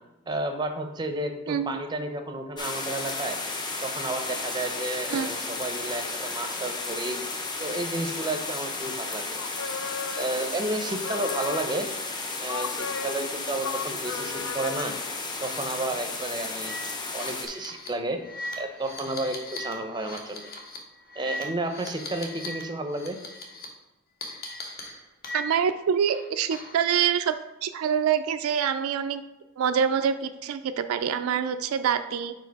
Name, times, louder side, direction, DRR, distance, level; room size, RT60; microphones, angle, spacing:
voice 1, 0.3-3.4 3.8-7.2 7.6-9.4 10.2-11.9 12.4-15.0 15.4-16.8 17.1-18.2 18.6-20.5 21.2-23.2, right 2 dB, 20° right, 6 dB, 0.6 m, -32 dB
voice 2, 1.5-1.8 5.1-5.3 25.3-29.2 29.6-32.3, right 8 dB, 70° right, 9 dB, 0.3 m, -26 dB
sound 1, 2.6-17.5, left 3 dB, 20° left, 0.7 m, -33 dB
sound 2, 9.4-10.6 10.9-12.0 12.5-15.0, left 6 dB, 65° left, 0.3 m, -36 dB
sound 3, 15.4-15.6 15.9-16.0 16.5-22.6 22.9-23.6 24.2-25.7 26.1-26.8, left 2 dB, 45° left, 1.1 m, -39 dB
4.9 x 4.7 x 4.6 m, 1.0 s
head